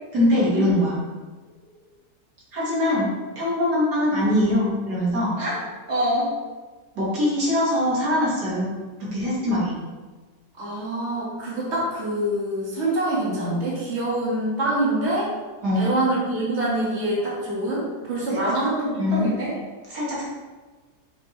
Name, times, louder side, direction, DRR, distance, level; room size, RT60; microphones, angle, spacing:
voice 1, 0.1-1.0 2.5-3.1 3.4-5.4 7.0-8.7 9.0-9.7 15.6-15.9 19.0-19.3 19.9-20.2, left 1 dB, 90° right, -7 dB, 2.6 m, -22 dB
voice 2, 5.9-6.3 10.6-15.3 15.8-19.5, right 1 dB, 45° right, -7 dB, 2.2 m, -25 dB
7.0 x 5.4 x 3.3 m, 1.3 s
omnidirectional pair, 1.7 m